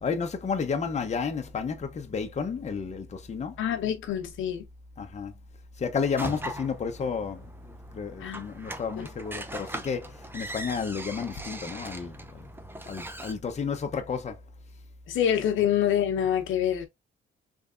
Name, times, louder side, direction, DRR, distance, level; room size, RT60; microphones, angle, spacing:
voice 1, 0.0-3.6 5.0-5.3 5.8-7.4 7.9-12.2 12.9-14.4, left 5 dB, 35° left, 0.9 m, -31 dB
voice 2, 3.6-4.6 8.2-8.4 9.0-9.1 15.1-16.9, left 10 dB, 80° left, 0.9 m, -26 dB
sound 1, 6.2-13.3, right 1 dB, 10° right, 0.6 m, -40 dB
3.5 x 3.3 x 2.5 m
cardioid pair, 90°, 20 cm